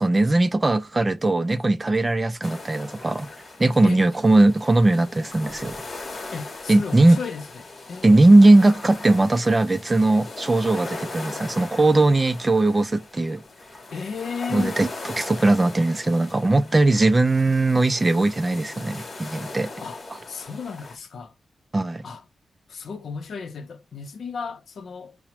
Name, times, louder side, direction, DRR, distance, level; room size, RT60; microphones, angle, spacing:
voice 1, 0.0-3.3 3.6-5.8 6.7-7.2 8.0-13.4 14.5-14.9 15.2-19.7 21.7-22.0, right 2 dB, 20° right, 0.3 m, -19 dB
sound 1, 2.4-21.0, left 3 dB, 40° left, 0.8 m, -39 dB
voice 2, 6.3-7.6 7.9-8.2 13.9-14.8 19.8-20.0 20.3-21.3 22.0-22.3 22.7-25.2, left 5 dB, 70° left, 0.6 m, -34 dB
5.8 x 2.0 x 2.8 m
wide cardioid pair, 140°, 0 cm